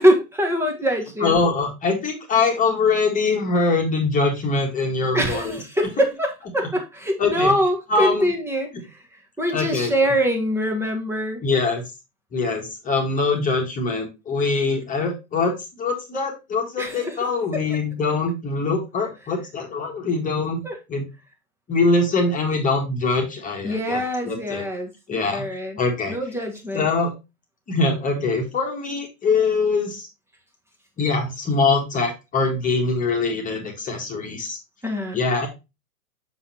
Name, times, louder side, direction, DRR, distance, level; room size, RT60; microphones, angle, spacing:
voice 1, 0.0-1.4 5.1-9.0 9.4-11.4 16.8-17.2 17.5-17.8 20.6-20.8 23.6-25.8 26.1-26.9 34.8-35.2, equal, 5° right, 3 dB, 1.2 m, -23 dB
voice 2, 1.2-5.6 7.2-7.5 7.9-8.2 9.5-9.9 11.4-11.8 12.3-15.5 15.8-20.6 20.9-21.0 21.7-24.0 24.3-24.6 25.1-25.4 25.8-26.2 26.7-27.1 27.7-30.1 31.0-34.6 35.1-35.5, left 3 dB, 20° left, 1 dB, 1.5 m, -23 dB
6.7 x 5.6 x 2.8 m, 0.25 s
figure-of-eight pair, 110°, 43 cm